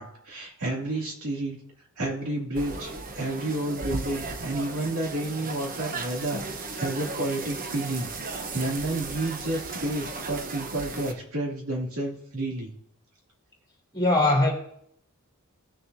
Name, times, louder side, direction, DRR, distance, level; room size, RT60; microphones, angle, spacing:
voice 1, 0.0-1.6 2.0-6.4 6.7-12.7, right 1 dB, 70° right, 2.5 m, -30 dB
sound 1, 2.5-11.1, right 3 dB, 40° right, 0.9 m, -36 dB
voice 2, 13.9-14.5, left 2 dB, 20° left, 2.9 m, -20 dB
16.5 x 6.7 x 2.7 m
head